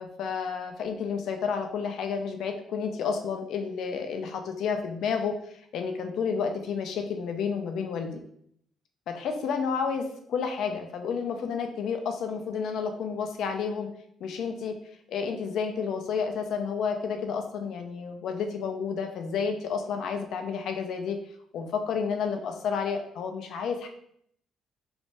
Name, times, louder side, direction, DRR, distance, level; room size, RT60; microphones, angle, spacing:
voice 1, 0.0-5.4 5.7-8.2 9.1-13.9 14.2-14.8 15.1-21.2 21.5-23.9, left 6 dB, 65° left, 5 dB, 0.5 m, -30 dB
3.1 x 2.6 x 3.2 m, 0.68 s
cardioid pair, 150°, 0 cm